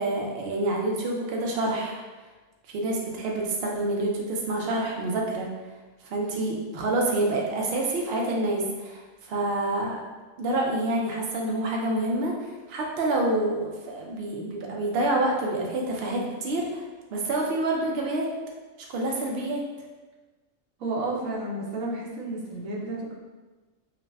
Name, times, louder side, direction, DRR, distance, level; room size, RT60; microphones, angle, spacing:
voice 1, 0.0-2.0 2.7-5.5 6.0-10.0 10.4-16.8 17.1-18.3 18.9-19.6, right 2 dB, 60° right, -1 dB, 0.7 m, -27 dB
voice 2, 20.8-23.1, right 2 dB, 80° right, -4 dB, 1.1 m, -31 dB
4.7 x 2.1 x 2.3 m, 1.3 s
omnidirectional pair, 1.4 m